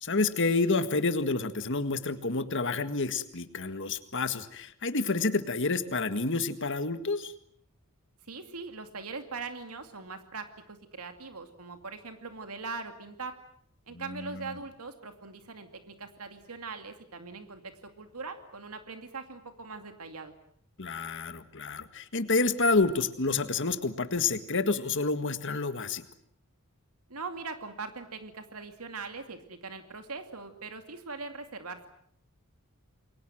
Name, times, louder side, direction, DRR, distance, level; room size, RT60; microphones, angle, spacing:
voice 1, 0.0-7.3 13.9-14.6 20.8-26.1, left 3 dB, 55° left, 10 dB, 1.8 m, -29 dB
voice 2, 8.3-13.4 13.9-20.3 27.1-31.9, right 4 dB, 80° right, 7 dB, 2.5 m, -41 dB
29.0 x 22.5 x 7.7 m, 0.67 s
head